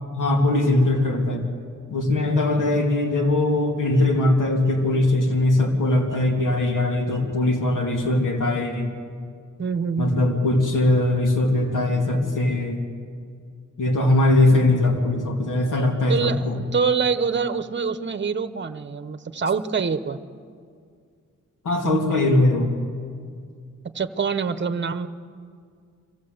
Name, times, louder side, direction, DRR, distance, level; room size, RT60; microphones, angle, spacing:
voice 1, 0.1-1.5 1.9-8.9 10.0-12.8 13.8-16.6 21.6-22.8, left 2 dB, 85° left, 2 dB, 2.8 m, -21 dB
voice 2, 9.6-10.4 16.1-20.2 23.8-25.1, right 5 dB, 35° right, 11 dB, 1.0 m, -25 dB
25.0 x 16.0 x 8.0 m, 2.2 s
wide cardioid pair, 100°, 30 cm